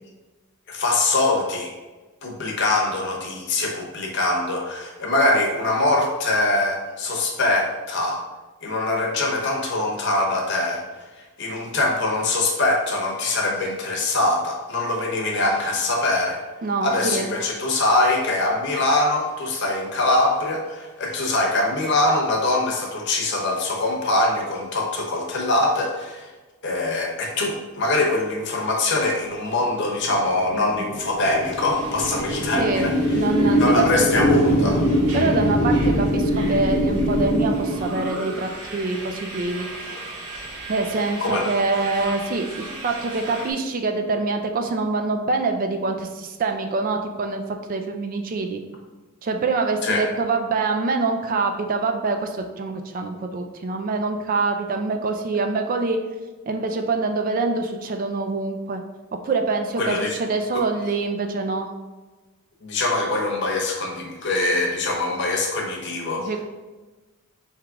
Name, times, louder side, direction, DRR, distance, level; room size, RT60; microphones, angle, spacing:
voice 1, 0.7-1.7 2.2-8.2 8.6-10.8 11.2-16.4 16.8-26.3 26.6-33.2 33.6-34.8 41.2-41.4 49.8-50.0 59.8-60.1 60.5-60.6 62.6-66.3, left 2 dB, 50° left, 0 dB, 0.9 m, -23 dB
voice 2, 16.6-17.3 30.5-30.8 32.6-32.9 33.1-33.9 34.2-34.3 35.1-39.7 40.7-47.4 47.7-48.6 49.2-56.0 56.5-58.8 59.2-61.7 66.2-66.4, right 3 dB, 40° right, 5 dB, 0.3 m, -25 dB
sound 1, 29.7-38.5, equal, 85° left, 0.9 m, -22 dB
sound 2, 31.4-43.5, right 2 dB, 75° right, 0.9 m, -38 dB
3.6 x 3.0 x 4.6 m, 1.2 s
head